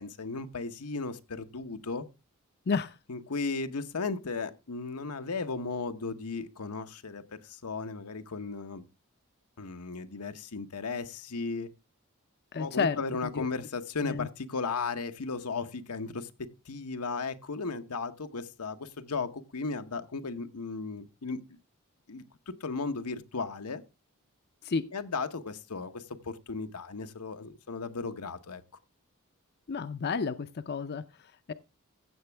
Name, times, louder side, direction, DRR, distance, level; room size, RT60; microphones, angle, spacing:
voice 1, 0.0-2.1 3.1-8.8 9.6-11.7 12.6-21.6 22.1-23.8 24.9-28.6, left 4 dB, 90° left, 0.9 m, -36 dB
voice 2, 2.7-3.0 12.5-13.0 13.3-13.5 14.0-14.3 24.6-24.8 29.7-31.5, left 5 dB, 50° left, 0.5 m, -31 dB
15.5 x 6.9 x 3.4 m
head